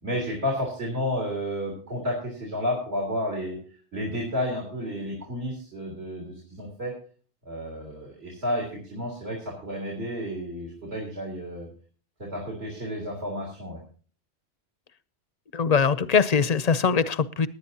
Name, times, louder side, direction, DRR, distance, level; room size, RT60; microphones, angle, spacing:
voice 1, 0.0-3.6 3.9-6.9 7.5-11.7 12.2-13.8, left 1 dB, 65° right, -3 dB, 3.8 m, -31 dB
voice 2, 15.5-17.5, left 6 dB, 45° left, 15 dB, 0.6 m, -22 dB
19.0 x 10.5 x 2.8 m, 0.40 s
omnidirectional pair, 1.2 m